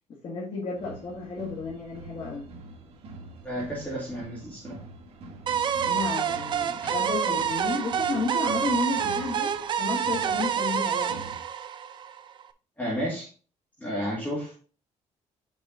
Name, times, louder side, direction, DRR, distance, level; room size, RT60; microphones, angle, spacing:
voice 1, 0.2-2.4 5.9-9.5 9.8-11.2, left 3 dB, 50° left, -4 dB, 1.8 m, -32 dB
sound 1, 0.8-11.4, right 2 dB, 55° right, 1.6 m, -45 dB
voice 2, 3.4-4.8 12.8-13.3 13.8-14.5, equal, 15° left, -5 dB, 2.3 m, -32 dB
sound 2, 5.5-12.4, right 8 dB, 40° right, 0.5 m, -28 dB
6.3 x 5.0 x 3.9 m, 0.38 s
cardioid pair, 160°, 12 cm